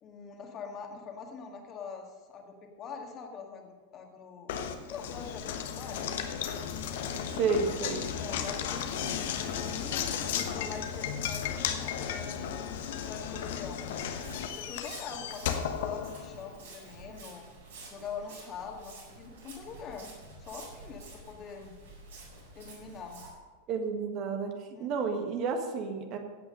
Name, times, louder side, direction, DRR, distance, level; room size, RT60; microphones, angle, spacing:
voice 1, 0.0-6.1 8.2-12.4 13.1-13.9 14.4-17.4 17.9-20.1 20.4-21.7 22.5-23.2 24.7-25.1, left 5 dB, 30° left, 2 dB, 2.0 m, -44 dB
Knock, 4.5-16.6, left 8 dB, 55° left, 1.1 m, -34 dB
voice 2, 7.3-8.1 23.7-24.5 24.8-26.2, right 5 dB, 40° right, 5 dB, 1.6 m, -31 dB
Walk footsteps, 13.9-23.3, right 3 dB, 65° right, 4.9 m, -50 dB
16.0 x 8.6 x 5.4 m, 1.3 s
figure-of-eight pair, 90°, 0 cm